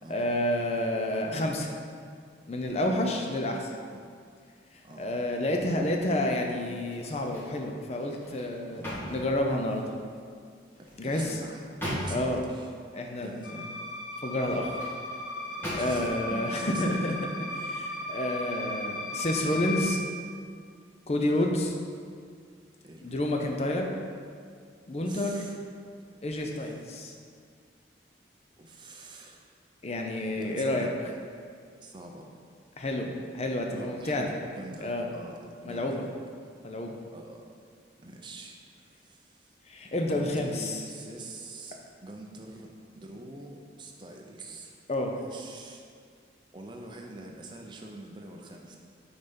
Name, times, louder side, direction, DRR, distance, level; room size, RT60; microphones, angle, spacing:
voice 1, 0.1-1.7 2.5-3.7 5.0-9.8 11.0-11.4 12.1-12.4 12.9-13.7 14.2-14.8 15.7-17.1 17.5-20.0 21.1-21.7 23.0-23.9 24.9-25.4 26.2-27.1 29.8-30.9 32.8-34.3 34.8-35.1 35.7-36.0 36.6-37.0 39.7-40.8 44.9-45.2, left 1 dB, 35° left, 2 dB, 0.6 m, -29 dB
sound 1, 6.9-7.6 8.0-10.0 10.7-12.4 14.2-15.0 15.6-16.2 16.7-16.9, equal, 10° left, 1.6 m, -38 dB
voice 2, 8.7-9.1 10.8-12.7 13.2-13.6 15.5-16.8 19.5-19.9 21.3-21.5 22.8-23.1 25.0-25.6 26.0-26.1 26.5-26.8 28.6-29.4 30.4-31.0 31.8-32.3 33.7-36.1 37.1-37.5 38.0-39.6 40.1-44.8 45.1-45.8 46.5-48.8, right 2 dB, 25° right, 1 dB, 0.6 m, -45 dB
sound 2, 13.4-19.9, left 2 dB, 75° left, 1.2 m, -36 dB
5.6 x 4.0 x 5.2 m, 2.2 s
head